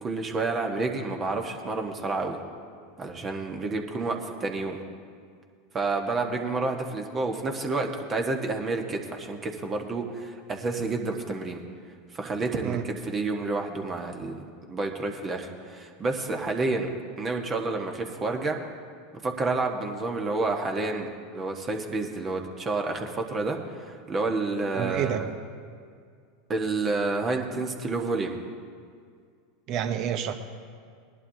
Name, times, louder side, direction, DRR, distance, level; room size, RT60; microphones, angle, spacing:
voice 1, 0.0-2.4 3.0-4.8 5.7-11.6 12.1-16.9 17.2-18.6 19.2-21.1 21.3-25.3 26.5-28.4, right 3 dB, 30° right, 3 dB, 1.3 m, -29 dB
voice 2, 24.7-25.3 29.7-30.3, right 9 dB, 50° right, 8 dB, 1.0 m, -28 dB
19.5 x 11.5 x 2.8 m, 2.2 s
hypercardioid pair, 95°, 0 cm